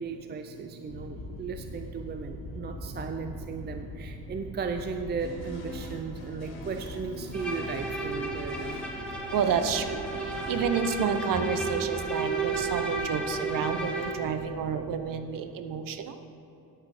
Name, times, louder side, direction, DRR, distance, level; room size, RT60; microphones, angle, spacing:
voice 1, 0.0-8.8 10.2-10.5 11.5-11.7, right 5 dB, 25° right, 6 dB, 0.5 m, -36 dB
Thunder, 0.9-15.1, left 2 dB, 60° left, 2.6 m, -44 dB
sound 1, 5.2-10.6, left 1 dB, 85° left, 2.1 m, -44 dB
Bowed string instrument, 7.3-14.3, right 3 dB, 5° left, 1.6 m, -33 dB
voice 2, 9.3-10.0 10.5-16.1, right 7 dB, 60° right, 9 dB, 0.9 m, -29 dB
10.0 x 8.6 x 4.9 m, 2.9 s
cardioid pair, 95°, 38 cm